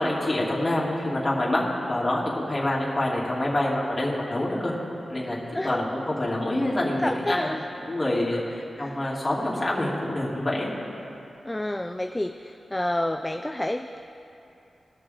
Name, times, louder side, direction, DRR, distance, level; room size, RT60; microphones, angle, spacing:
voice 1, 0.0-4.7 5.1-5.4 5.6-7.4 7.9-8.4 8.8-10.7, left 1 dB, 30° left, -5 dB, 2.6 m, -26 dB
voice 2, 7.0-7.6 8.3-8.5 8.8-9.0 11.5-14.0, left 1 dB, 15° left, 7 dB, 0.3 m, -29 dB
19.5 x 6.7 x 3.6 m, 2.8 s
cardioid pair, 70°, 0 cm